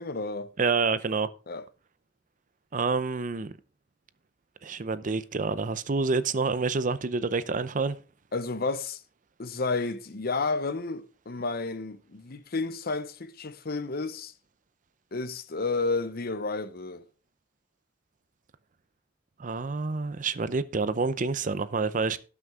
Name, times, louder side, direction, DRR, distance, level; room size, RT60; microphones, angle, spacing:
voice 1, 0.0-0.5 1.5-1.7 8.3-9.0 9.4-14.3 15.1-17.0, left 3 dB, 55° left, 0.8 m, -31 dB
voice 2, 0.6-1.3 2.7-3.5 4.6-8.0 19.4-22.3, right 4 dB, 45° right, 0.6 m, -28 dB
18.0 x 6.1 x 3.7 m
head